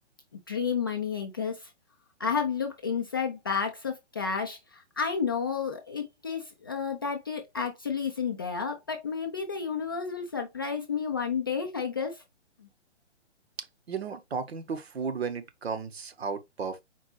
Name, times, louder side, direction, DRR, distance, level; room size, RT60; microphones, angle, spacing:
voice 1, 0.3-1.7 2.2-12.2 12.6-12.7, left 6 dB, 20° left, 0.4 m, -31 dB
voice 2, 13.6-16.8, right 5 dB, 60° right, 1.0 m, -34 dB
4.6 x 3.9 x 3.0 m
figure-of-eight pair, 130°, 36 cm